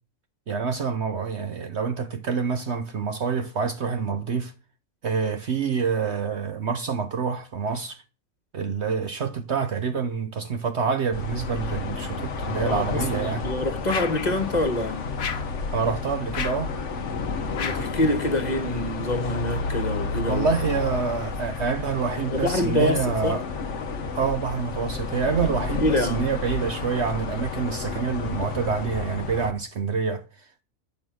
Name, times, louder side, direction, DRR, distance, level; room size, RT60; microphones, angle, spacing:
voice 1, 0.5-4.5 5.0-8.0 8.5-13.4 15.7-16.7 20.3-23.5 24.1-30.6, right 5 dB, 55° right, 1.0 m, -27 dB
sound 1, 11.1-29.5, left 4 dB, 60° left, 1.2 m, -31 dB
voice 2, 12.6-15.0 17.6-20.5 22.3-23.4 25.8-26.3, left 1 dB, 30° left, 1.6 m, -26 dB
sound 2, 13.9-14.3 15.2-15.6 16.3-16.7 17.5-18.0, left 7 dB, 75° left, 1.5 m, -32 dB
9.4 x 8.6 x 6.2 m
omnidirectional pair, 1.5 m